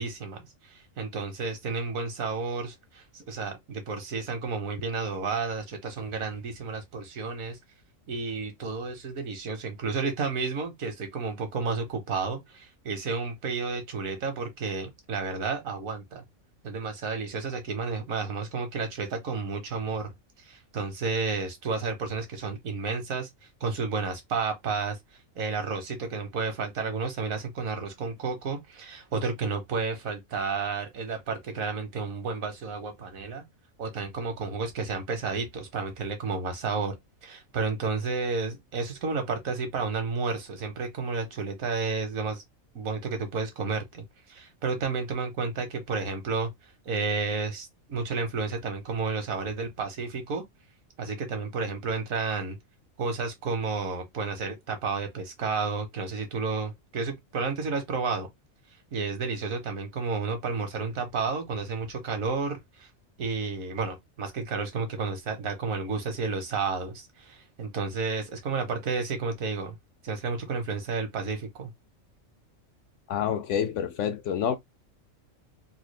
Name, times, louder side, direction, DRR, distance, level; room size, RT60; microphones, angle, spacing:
voice 1, 0.0-7.6 8.1-16.2 16.6-20.1 20.5-23.3 23.6-25.0 25.4-33.4 33.8-37.0 37.2-42.4 42.7-46.5 46.8-50.4 51.0-52.6 53.0-58.3 58.9-62.9 63.2-69.8 70.0-71.7, right 4 dB, 80° right, 1.5 m, -31 dB
voice 2, 73.1-74.6, left 8 dB, 70° left, 0.9 m, -28 dB
3.8 x 2.3 x 3.2 m
omnidirectional pair, 1.4 m